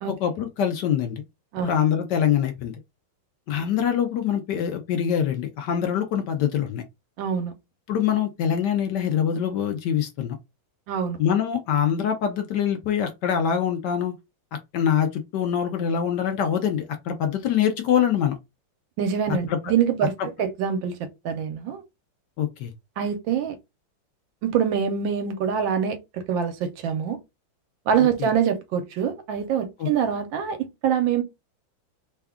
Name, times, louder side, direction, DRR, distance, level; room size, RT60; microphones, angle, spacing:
voice 1, 0.1-1.2 1.6-2.7 3.5-6.8 7.9-10.4 11.2-14.1 14.7-18.4 19.5-19.7 22.4-22.7 28.2-28.3 29.8-29.9, left 8 dB, 70° left, 1.1 m, -24 dB
voice 2, 7.2-7.5 10.9-11.2 19.0-20.1 20.4-21.8 23.0-23.6 24.4-27.2 27.9-30.6 30.8-31.2, right 8 dB, 75° right, 1.4 m, -25 dB
3.5 x 2.3 x 3.5 m
omnidirectional pair, 2.1 m